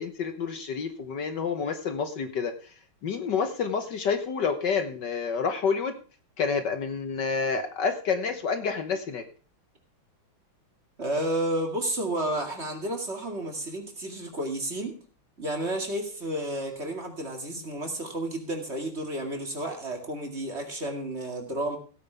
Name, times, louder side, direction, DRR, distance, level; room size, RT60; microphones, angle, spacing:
voice 1, 0.0-2.5 3.0-5.9 6.4-9.2, left 5 dB, 60° left, 8 dB, 1.6 m, -28 dB
voice 2, 11.0-15.0 15.4-21.8, right 1 dB, 30° right, 3 dB, 2.4 m, -31 dB
16.5 x 9.3 x 3.4 m, 0.39 s
omnidirectional pair, 2.3 m